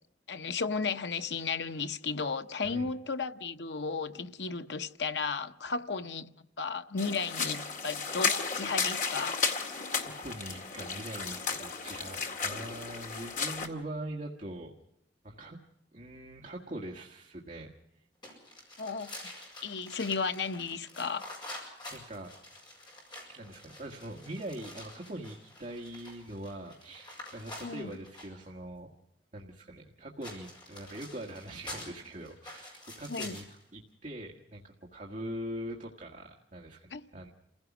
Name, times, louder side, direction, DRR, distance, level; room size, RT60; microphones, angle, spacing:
voice 1, 0.3-6.3 6.6-9.4 18.8-19.3 19.6-21.3 27.6-28.0 33.1-33.4 36.9-37.0, left 4 dB, 75° left, 0.9 m, -34 dB
sound 1, 7.0-13.7, left 5 dB, 45° left, 2.1 m, -33 dB
voice 2, 10.0-14.7 15.2-15.6 15.9-18.0 21.0-21.2 21.9-22.3 23.2-28.9 29.3-33.4 33.7-37.3, right 1 dB, 45° right, 1.6 m, -42 dB
sound 2, 18.2-28.5 30.2-33.6, left 1 dB, 25° left, 7.3 m, -47 dB
28.5 x 16.0 x 6.1 m
head